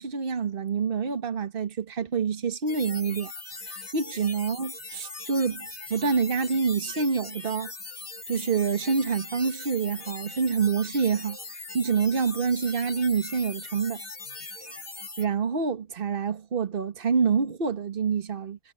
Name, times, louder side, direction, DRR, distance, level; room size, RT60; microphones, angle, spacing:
voice 1, 0.0-3.3 3.6-7.7 8.3-14.0 15.2-18.6, right 5 dB, 40° right, 1.6 m, -27 dB
sound 1, 2.7-15.3, left 3 dB, 80° left, 3.9 m, -40 dB
omnidirectional pair, 1.4 m